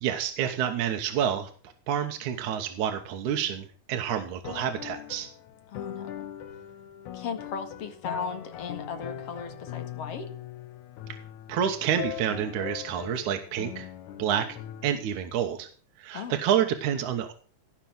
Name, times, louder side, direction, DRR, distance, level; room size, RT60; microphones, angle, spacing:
voice 1, 0.0-5.3 11.5-13.9 14.2-14.5 14.8-15.7 16.0-17.3, right 9 dB, 80° right, 5 dB, 2.5 m, -28 dB
sound 1, 4.4-14.9, left 11 dB, 75° left, 2.7 m, -40 dB
voice 2, 5.7-6.1 7.1-10.3 16.1-16.4, left 5 dB, 55° left, 7 dB, 2.7 m, -36 dB
17.5 x 6.1 x 7.7 m, 0.42 s
omnidirectional pair, 3.5 m